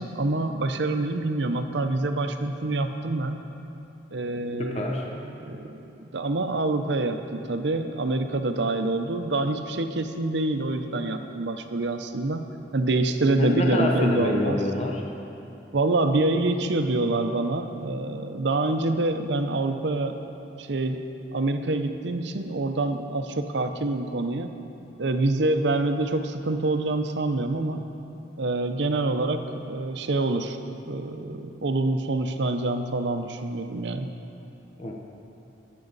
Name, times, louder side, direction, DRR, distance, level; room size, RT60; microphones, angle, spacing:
voice 1, 0.0-3.4 4.1-12.5 12.7-14.6 15.7-20.2 20.6-21.0 21.3-24.5 25.0-27.8 28.4-30.6 30.9-34.1, right 2 dB, 70° right, 7 dB, 0.7 m, -26 dB
voice 2, 4.6-5.1 13.4-15.0 34.8-34.9, left 1 dB, 35° left, 0 dB, 0.9 m, -26 dB
20.5 x 7.5 x 4.0 m, 2.9 s
head